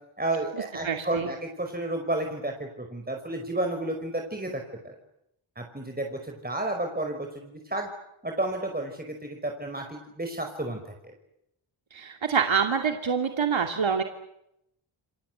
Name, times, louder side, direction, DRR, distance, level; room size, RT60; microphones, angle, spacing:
voice 1, 0.2-4.5 4.8-5.0 5.6-7.9 8.2-11.1, right 2 dB, 20° right, 3 dB, 5.3 m, -32 dB
voice 2, 0.8-1.3 11.9-14.0, right 6 dB, 65° right, 4 dB, 2.7 m, -26 dB
29.5 x 24.0 x 8.1 m, 0.81 s
cardioid pair, 60°, 49 cm